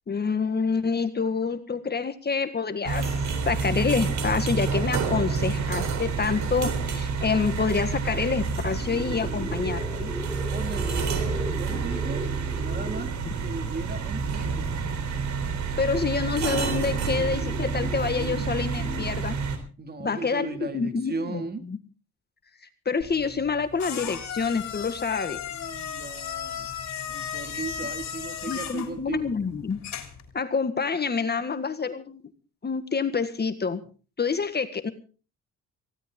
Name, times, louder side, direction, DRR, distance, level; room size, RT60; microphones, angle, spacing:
voice 1, 0.1-3.1 3.4-10.1 15.8-19.4 20.0-21.4 21.7-21.8 22.8-25.4 28.5-29.8 30.3-32.2 32.6-33.8 34.2-34.9, left 5 dB, 35° left, 10 dB, 1.7 m, -27 dB
sound 1, 2.8-19.6, right 5 dB, 70° right, 3.7 m, -29 dB
sound 2, 8.6-19.1, equal, 5° right, 5.6 m, -38 dB
voice 2, 10.5-12.3 12.6-14.8 19.8-21.7 25.5-26.7 27.0-29.4, right 4 dB, 35° right, 8 dB, 2.4 m, -37 dB
sound 3, 23.0-30.3, left 8 dB, 65° left, 3.4 m, -36 dB
19.0 x 16.5 x 3.8 m, 0.37 s
cardioid pair, 90°, 30 cm